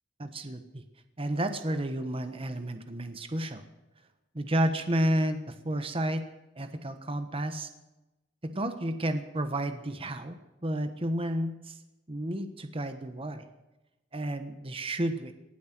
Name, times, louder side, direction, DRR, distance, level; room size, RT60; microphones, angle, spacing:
voice 1, 0.2-0.8 1.2-3.6 4.3-6.2 6.5-7.7 8.4-11.8 12.1-13.5 14.1-15.3, right 1 dB, 30° right, 9 dB, 1.2 m, -31 dB
18.5 x 11.5 x 6.1 m, 0.99 s
head